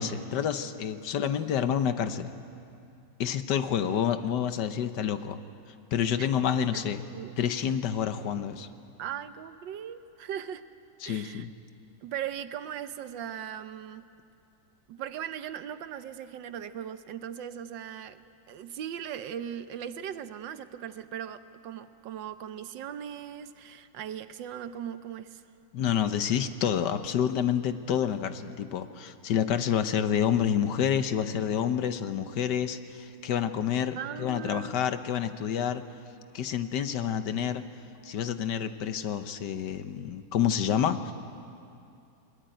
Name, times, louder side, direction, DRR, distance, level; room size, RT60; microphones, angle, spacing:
voice 1, 0.0-2.3 3.2-5.4 5.9-7.0 7.4-8.7 11.0-11.5 25.7-35.8 36.3-37.6 38.0-41.1, left 8 dB, 70° left, 10 dB, 1.5 m, -28 dB
voice 2, 9.0-10.6 11.0-11.5 12.0-14.0 14.9-25.4 33.9-34.7, right 9 dB, 80° right, 11 dB, 1.5 m, -39 dB
22.0 x 21.5 x 9.0 m, 2.6 s
omnidirectional pair, 2.0 m